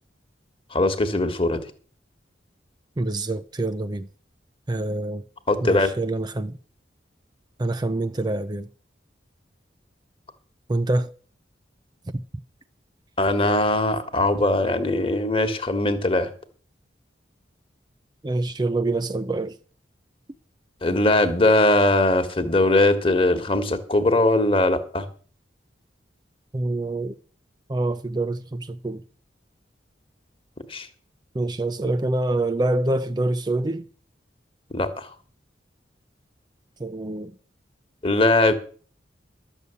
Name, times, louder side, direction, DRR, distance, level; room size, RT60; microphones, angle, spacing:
voice 1, 0.7-1.6 5.5-5.9 13.2-16.3 20.8-25.0 30.7-30.9 34.7-35.1 38.0-38.5, left 2 dB, 30° left, 1.5 m, -20 dB
voice 2, 3.0-4.1 4.7-5.2 5.6-6.6 7.6-8.7 10.7-11.1 18.2-19.6 26.5-27.2 27.7-29.0 31.3-33.8 36.8-37.3, right 2 dB, 25° right, 0.5 m, -26 dB
12.5 x 6.8 x 8.2 m
head